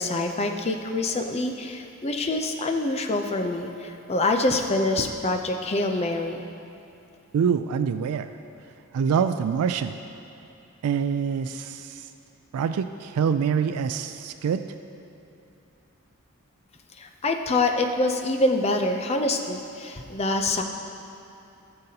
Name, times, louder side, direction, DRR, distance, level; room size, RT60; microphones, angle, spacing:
voice 1, 0.0-6.4 17.0-20.6, left 2 dB, 30° left, 4 dB, 0.5 m, -25 dB
voice 2, 7.3-8.3 8.9-10.0 10.8-12.1 12.5-14.6, right 7 dB, 85° right, 11 dB, 0.3 m, -25 dB
16.5 x 6.7 x 2.8 m, 2.7 s
head